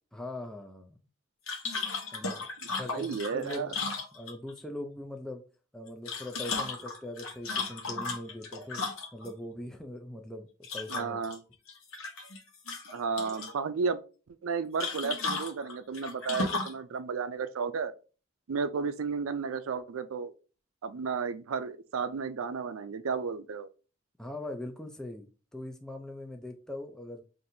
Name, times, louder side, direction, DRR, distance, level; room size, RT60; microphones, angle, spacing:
voice 1, 0.1-1.0 2.1-5.4 5.7-8.8 9.1-10.5 10.7-11.2 24.2-27.2, left 1 dB, 5° left, 0.4 m, -41 dB
sound 1, 1.5-4.6 5.9-9.3 10.6-11.4 11.7-12.4 12.7-13.5 14.8-16.8, left 3 dB, 80° left, 1.0 m, -35 dB
voice 2, 2.9-3.7 10.9-11.4 12.9-14.0 14.4-17.9 18.5-20.3 20.8-23.7, right 5 dB, 80° right, 0.4 m, -33 dB
5.7 x 2.6 x 2.6 m
head